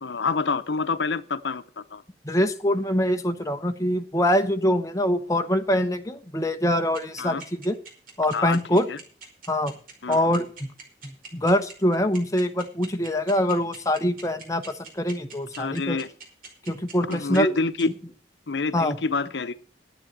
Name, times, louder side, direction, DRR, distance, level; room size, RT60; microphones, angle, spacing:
voice 1, 0.0-2.0 7.2-7.4 8.3-9.0 10.0-10.3 15.6-16.1 17.1-17.9 18.5-19.6, left 4 dB, 85° left, 12 dB, 0.7 m, -27 dB
voice 2, 2.2-7.8 8.2-8.9 9.5-9.7 10.1-10.7 11.0-16.0 16.7-17.5 17.8-17.9 18.7-19.0, left 1 dB, 20° left, 7 dB, 1.0 m, -24 dB
sound 1, 6.9-17.8, right 5 dB, 50° right, 5.0 m, -42 dB
11.5 x 8.8 x 7.4 m, 0.42 s
head